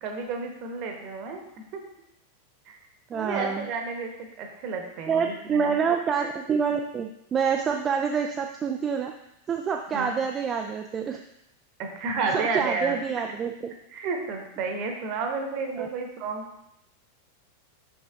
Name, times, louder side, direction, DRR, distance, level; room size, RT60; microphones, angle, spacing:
voice 1, 0.0-1.4 1.7-1.8 2.7-2.8 3.1-5.8 9.9-10.2 11.8-13.0 13.9-16.5, right 4 dB, 40° right, 3 dB, 1.1 m, -31 dB
voice 2, 3.1-3.6 5.1-9.1 9.5-11.2 12.3-13.5 15.8-15.9, right 6 dB, 25° right, 3 dB, 0.4 m, -27 dB
5.9 x 5.1 x 3.6 m, 0.82 s
figure-of-eight pair, 90°, 0 cm